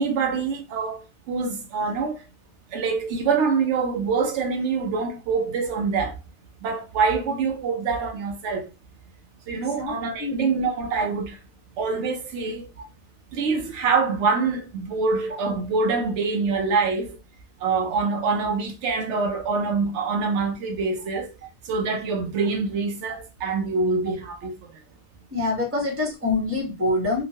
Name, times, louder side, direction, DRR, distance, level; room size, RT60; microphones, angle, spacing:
voice 1, 0.0-2.2 2.7-6.1 6.6-8.7 9.5-11.4 11.8-12.7 13.3-17.2 17.6-21.3 21.7-24.5, right 4 dB, 80° right, 0.9 m, -25 dB
voice 2, 25.3-27.2, left 2 dB, 15° right, 0.8 m, -25 dB
2.9 x 2.2 x 2.7 m
omnidirectional pair, 1.2 m